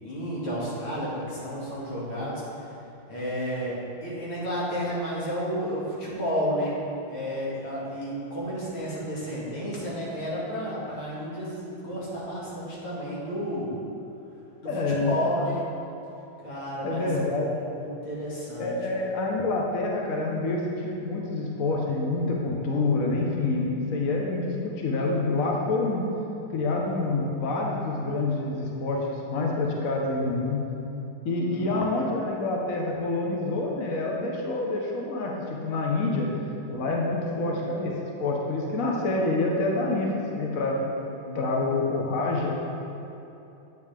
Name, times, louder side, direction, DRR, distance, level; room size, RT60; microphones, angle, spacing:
voice 1, 0.0-2.8 3.1-6.7 7.1-13.8 14.6-15.6 16.4-17.1 17.8-18.8 31.3-31.8 40.6-41.4, equal, 70° left, -8 dB, 3.1 m, -32 dB
voice 2, 14.6-15.1 16.8-17.5 18.6-26.0 26.5-30.6 31.2-36.3 36.7-37.9 38.2-40.7 41.3-42.5, left 2 dB, 50° left, -1 dB, 1.1 m, -27 dB
9.8 x 8.5 x 3.5 m, 3.0 s
omnidirectional pair, 2.3 m